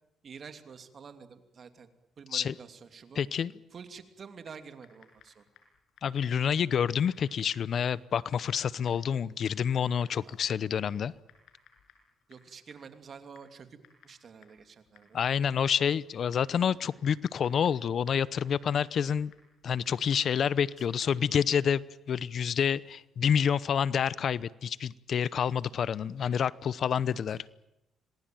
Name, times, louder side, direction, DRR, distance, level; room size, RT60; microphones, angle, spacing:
voice 1, 0.2-1.9 2.2-3.2 3.7-5.5 10.2-10.4 12.3-13.8 14.0-15.3 20.8-20.9 27.1-27.4, right 6 dB, 50° right, 8 dB, 2.8 m, -48 dB
voice 2, 3.2-3.5 6.0-11.1 15.1-19.3 19.6-27.4, left 7 dB, 60° left, 20 dB, 0.8 m, -28 dB
Typing, 4.4-21.3, left 6 dB, 75° left, 6.9 m, -63 dB
26.5 x 20.0 x 9.2 m, 0.94 s
cardioid pair, 90°, 0 cm